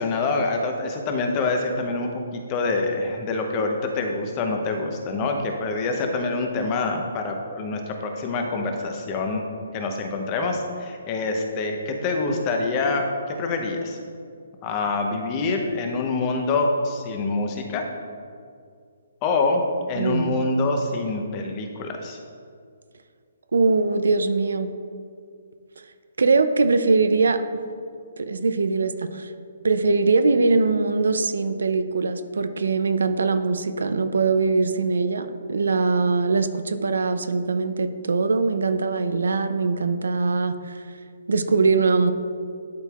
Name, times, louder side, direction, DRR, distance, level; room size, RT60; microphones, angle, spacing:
voice 1, 0.0-9.5 9.7-14.0 14.6-17.8 19.2-19.6 19.9-22.2, left 3 dB, 25° left, 3 dB, 0.7 m, -26 dB
voice 2, 20.0-20.5 23.5-24.7 26.2-27.6 28.2-29.3 29.6-40.8 41.3-42.1, right 4 dB, 85° right, 10 dB, 0.4 m, -22 dB
11.5 x 4.4 x 2.4 m, 2.2 s
hypercardioid pair, 160°, 0 cm